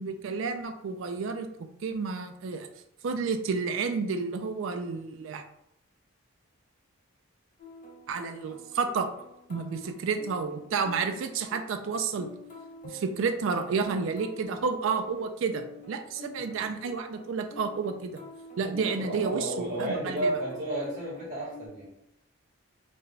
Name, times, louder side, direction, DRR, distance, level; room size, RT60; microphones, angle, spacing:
voice 1, 0.0-2.7 3.0-5.4 8.1-9.1 9.5-12.3 12.8-18.2 18.6-20.3, right 5 dB, 60° right, 7 dB, 0.3 m, -31 dB
sound 1, 7.6-21.7, left 2 dB, 40° left, 0.6 m, -48 dB
voice 2, 18.7-21.9, right 1 dB, 35° right, -7 dB, 1.3 m, -33 dB
3.9 x 2.2 x 3.2 m, 0.78 s
head